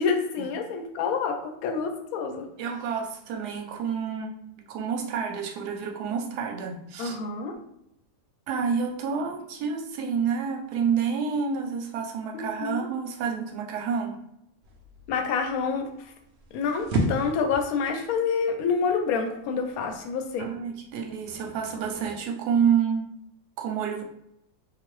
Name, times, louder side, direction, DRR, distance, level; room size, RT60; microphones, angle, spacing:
voice 1, 0.0-2.5 7.0-7.5 12.3-12.9 15.1-15.9 16.5-20.5, left 5 dB, 70° left, 5 dB, 1.0 m, -27 dB
voice 2, 2.6-4.4 4.7-7.2 8.5-14.2 20.4-23.1 23.6-24.0, right 6 dB, 85° right, 3 dB, 1.2 m, -28 dB
sound 1, 14.6-22.2, right 1 dB, 60° right, 0.7 m, -35 dB
3.8 x 2.5 x 3.1 m, 0.77 s
omnidirectional pair, 1.7 m